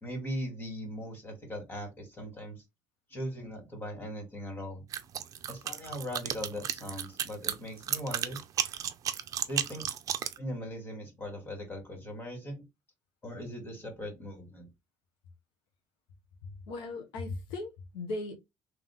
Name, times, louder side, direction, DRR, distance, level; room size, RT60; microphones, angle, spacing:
voice 1, 0.0-2.6 3.1-4.8 5.5-8.4 9.5-9.9 10.4-12.6 13.2-14.7, equal, 25° left, 2.5 m, -39 dB
sound 1, 4.9-10.4, right 9 dB, 45° right, 0.6 m, -33 dB
voice 2, 16.7-18.3, left 2 dB, 85° left, 1.4 m, -37 dB
3.8 x 3.2 x 3.6 m
cardioid pair, 115°, 8 cm